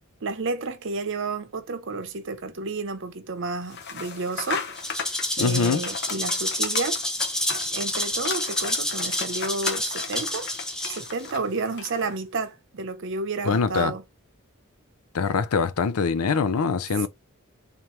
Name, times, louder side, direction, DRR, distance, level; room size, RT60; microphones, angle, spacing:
voice 1, 0.2-4.7 5.4-7.0 7.7-10.5 10.9-14.0 17.0-17.1, right 3 dB, 60° right, 0.7 m, -31 dB
sound 1, 3.7-12.2, left 6 dB, 50° left, 0.8 m, -36 dB
Rattle (instrument), 4.8-11.3, left 1 dB, 5° left, 0.6 m, -29 dB
voice 2, 5.4-5.8 13.5-13.9 15.1-17.1, left 5 dB, 80° left, 0.5 m, -23 dB
3.6 x 2.9 x 3.1 m
head